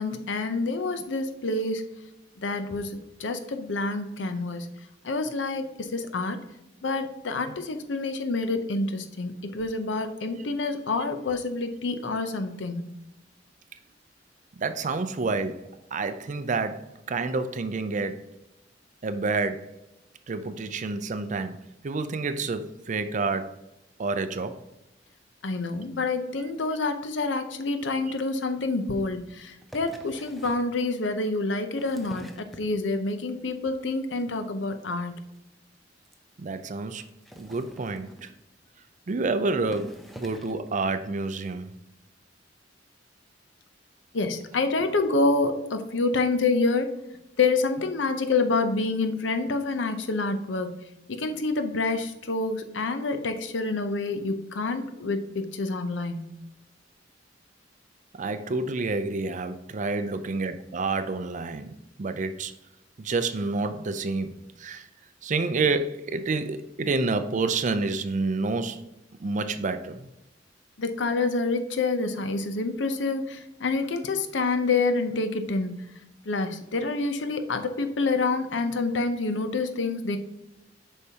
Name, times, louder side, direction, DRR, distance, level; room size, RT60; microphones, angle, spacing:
voice 1, 0.0-1.9 2.4-4.7 5.0-6.4 6.8-12.9 25.4-35.2 44.1-46.9 47.4-50.7 51.1-56.3 70.8-75.9 76.2-80.2, left 3 dB, 80° left, 0.7 m, -27 dB
voice 2, 14.6-18.2 19.0-19.7 20.3-21.6 21.8-23.5 24.0-24.6 36.4-37.0 37.4-38.3 39.1-41.7 58.1-62.5 63.0-64.9 65.2-68.9 69.2-70.1, right 3 dB, 45° right, 0.5 m, -29 dB
sound 1, 29.6-30.7 31.5-33.1 33.5-33.9 34.2-34.4 34.6-34.7 34.9-35.0 35.4-35.5 36.0-36.1 37.1-38.4 39.2-39.3 39.6-40.7 41.5-41.6, equal, ahead, 0.6 m, -46 dB
8.1 x 5.4 x 2.8 m
head